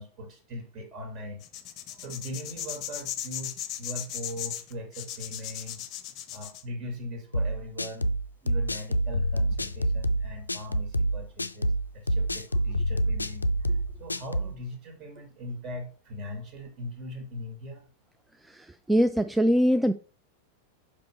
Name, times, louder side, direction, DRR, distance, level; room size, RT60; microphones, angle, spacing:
voice 1, 0.0-1.4 1.9-5.8 6.3-8.1 8.4-13.5 14.0-17.9, left 1 dB, 35° right, 4 dB, 2.1 m, -40 dB
sound 1, 1.4-6.6, left 11 dB, 35° left, 0.7 m, -37 dB
sound 2, 7.3-14.5, right 1 dB, 80° left, 0.3 m, -27 dB
voice 2, 18.5-19.9, equal, 5° right, 10 dB, 0.3 m, -23 dB
5.2 x 5.2 x 4.5 m, 0.38 s
figure-of-eight pair, 90°, 0 cm